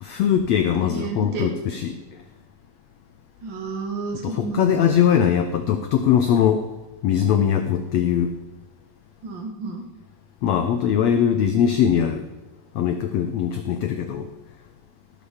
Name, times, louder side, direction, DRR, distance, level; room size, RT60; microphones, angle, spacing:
voice 1, 0.0-1.9 4.2-6.6 7.0-8.3 10.4-12.2 12.7-14.3, left 9 dB, 90° left, 7 dB, 1.5 m, -21 dB
voice 2, 0.8-1.5 3.4-4.8 9.2-9.8, right 4 dB, 60° right, 2 dB, 1.2 m, -31 dB
17.0 x 7.1 x 5.0 m, 1.2 s
omnidirectional pair, 4.0 m